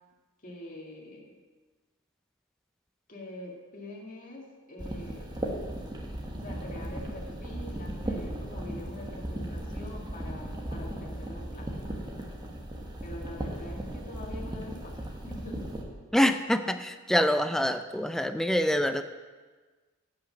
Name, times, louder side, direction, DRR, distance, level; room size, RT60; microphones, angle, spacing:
voice 1, 0.4-1.3 3.1-5.4 6.4-11.9 13.0-15.7, left 1 dB, 40° left, -1 dB, 2.0 m, -44 dB
sound 1, 4.8-15.8, right 1 dB, 20° right, 1.3 m, -37 dB
voice 2, 16.1-19.0, equal, ahead, 9 dB, 0.4 m, -25 dB
11.5 x 5.8 x 7.7 m, 1.3 s
head